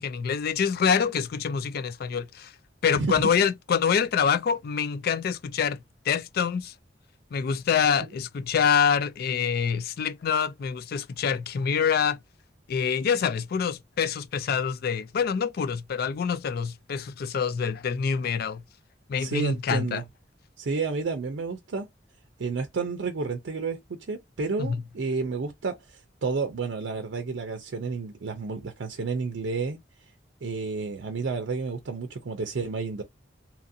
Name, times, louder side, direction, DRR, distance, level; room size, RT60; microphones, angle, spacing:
voice 1, 0.0-2.5 2.8-5.8 6.1-6.7 7.3-12.2 12.7-18.6 19.1-20.0 24.6-24.8, left 7 dB, 55° left, 0.3 m, -26 dB
voice 2, 19.2-20.0 20.6-21.9 22.4-29.8 30.4-33.0, right 4 dB, 75° right, 0.5 m, -30 dB
2.8 x 2.5 x 2.6 m
head